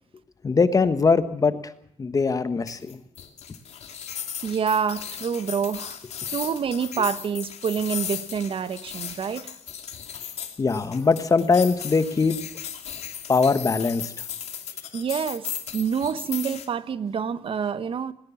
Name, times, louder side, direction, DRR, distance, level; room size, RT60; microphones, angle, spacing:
voice 1, 0.4-1.7 2.0-3.0 10.6-12.4 13.3-14.1, left 4 dB, 30° left, 12 dB, 1.4 m, -21 dB
sound 1, 2.7-16.7, left 8 dB, 75° left, 2.5 m, -36 dB
voice 2, 4.4-6.0 6.3-9.5 14.9-15.5 15.7-18.1, right 7 dB, 55° right, 14 dB, 1.1 m, -27 dB
20.5 x 18.5 x 7.2 m, 0.69 s
wide cardioid pair, 155°, 11 cm